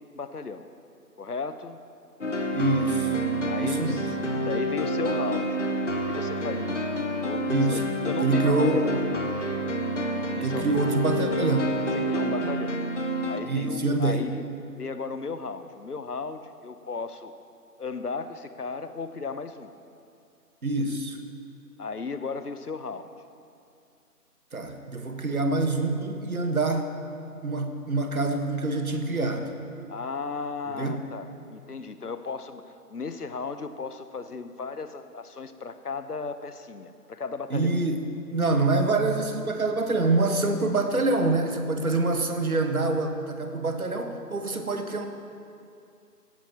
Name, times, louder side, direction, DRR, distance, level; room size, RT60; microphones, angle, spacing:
voice 1, 0.1-0.7 1.2-1.8 3.5-4.2 4.4-5.6 6.0-6.8 7.2-8.9 10.3-10.8 11.9-12.8 13.3-14.4 14.8-17.3 17.8-19.7 21.8-23.2 29.9-32.6 32.9-37.8, left 4 dB, 70° left, 11 dB, 1.0 m, -35 dB
sound 1, 2.2-13.4, right 1 dB, 50° left, 1.2 m, -28 dB
voice 2, 2.5-3.1 3.6-4.0 7.5-7.8 8.2-8.9 10.4-11.7 13.4-14.2 20.6-21.2 24.5-26.9 27.4-29.5 30.8-31.0 37.5-38.0 38.3-45.0, right 2 dB, 60° right, 5 dB, 1.5 m, -25 dB
16.5 x 15.5 x 3.0 m, 2.5 s
figure-of-eight pair, 155°, 47 cm